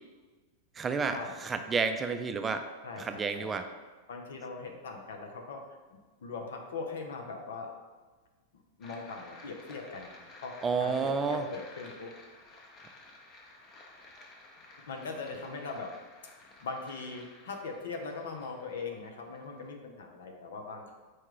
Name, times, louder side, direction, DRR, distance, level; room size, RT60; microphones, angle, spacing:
voice 1, 0.8-2.6 3.0-3.6 10.6-11.4, right 5 dB, 20° right, 7 dB, 0.3 m, -30 dB
voice 2, 2.8-3.6 4.1-7.7 8.8-10.5 10.8-12.1 14.9-15.9 16.4-20.9, left 4 dB, 80° left, 3 dB, 0.7 m, -41 dB
sound 1, 8.8-19.7, left 2 dB, 35° left, 0.8 m, -53 dB
4.6 x 2.4 x 4.7 m, 1.3 s
hypercardioid pair, 115°, 0 cm